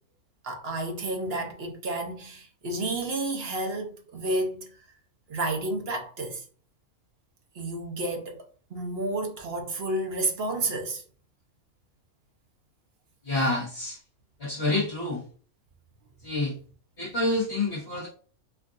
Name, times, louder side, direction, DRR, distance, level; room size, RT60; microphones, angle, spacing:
voice 1, 0.4-4.8 5.3-6.4 7.5-8.4 8.7-11.0, right 2 dB, 50° right, 0.9 m, -31 dB
voice 2, 13.2-14.0 14.4-15.2 16.2-16.5 17.0-18.1, left 2 dB, 50° left, 1.6 m, -27 dB
4.5 x 2.5 x 2.5 m
omnidirectional pair, 1.6 m